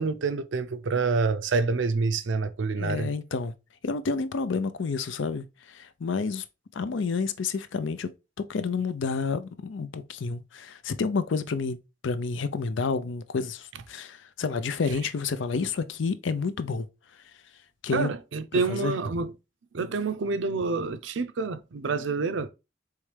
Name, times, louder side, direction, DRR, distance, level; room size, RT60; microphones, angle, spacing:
voice 1, 0.0-3.1 17.9-19.3 19.7-22.5, right 4 dB, 80° right, 0.5 m, -27 dB
voice 2, 2.8-3.5 3.8-6.4 6.7-8.1 8.4-11.8 12.0-16.9 17.8-18.1 18.5-18.9, left 4 dB, 80° left, 0.5 m, -29 dB
4.7 x 3.2 x 3.3 m
head